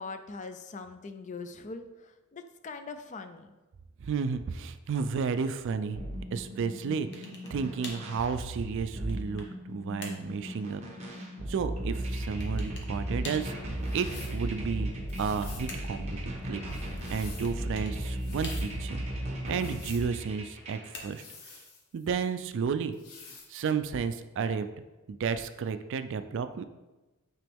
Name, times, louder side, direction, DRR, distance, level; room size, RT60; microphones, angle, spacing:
voice 1, 0.0-3.5, left 4 dB, 35° left, 8 dB, 0.4 m, -42 dB
voice 2, 4.0-6.0 6.3-10.8 11.5-14.9 15.2-16.6 17.1-19.1 19.5-21.2 21.9-23.0 23.5-24.7 25.1-26.6, right 5 dB, 60° right, 11 dB, 0.3 m, -32 dB
sound 1, 5.9-20.9, right 1 dB, 30° right, 1.0 m, -36 dB
sound 2, 7.1-7.6 7.8-8.1 8.8-9.6 10.0-10.3 12.4-12.9 13.2-13.5 14.9-16.1 17.4-18.0 18.4-19.0 20.4-21.4, left 3 dB, 55° left, 1.0 m, -45 dB
sound 3, 13.8-14.4 15.1-15.7 16.7-17.6 18.1-18.7 19.5-20.1 21.1-22.1 22.9-23.5, left 4 dB, 85° left, 1.1 m, -49 dB
8.8 x 3.0 x 3.4 m, 1.1 s
head